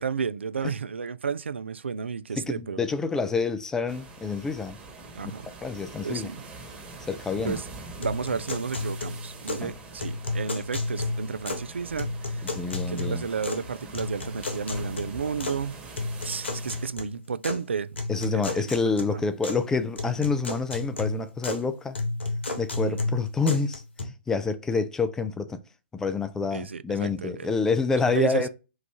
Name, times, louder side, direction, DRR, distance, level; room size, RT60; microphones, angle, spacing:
voice 1, 0.0-2.8 5.2-5.5 6.0-6.4 7.4-7.6 8.0-12.5 12.9-15.8 16.2-17.9 18.3-19.2 22.8-23.1 26.5-27.5 28.1-28.4, right 6 dB, 80° right, 0.3 m, -32 dB
voice 2, 2.4-4.8 5.6-6.3 7.1-7.6 9.6-9.7 12.4-13.3 18.1-22.0 22.6-23.8 24.3-25.6 25.9-28.5, left 4 dB, 10° left, 0.3 m, -27 dB
sound 1, 3.9-16.9, right 3 dB, 15° right, 1.2 m, -44 dB
sound 2, 8.0-9.7 10.0-11.7 12.0-13.7 13.9-15.6 16.0-17.6 18.0-19.6 20.0-21.6 21.9-24.0, left 3 dB, 75° left, 1.0 m, -32 dB
3.1 x 2.4 x 3.5 m
figure-of-eight pair, 125°, 6 cm